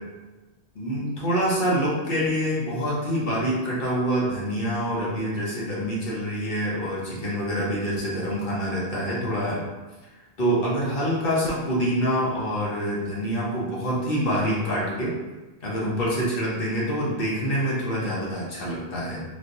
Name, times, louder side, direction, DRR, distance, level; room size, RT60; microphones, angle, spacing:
voice 1, 0.7-9.6 10.4-15.1 15.6-19.2, equal, 55° left, -6 dB, 1.0 m, -26 dB
3.3 x 2.7 x 2.6 m, 1.2 s
omnidirectional pair, 1.1 m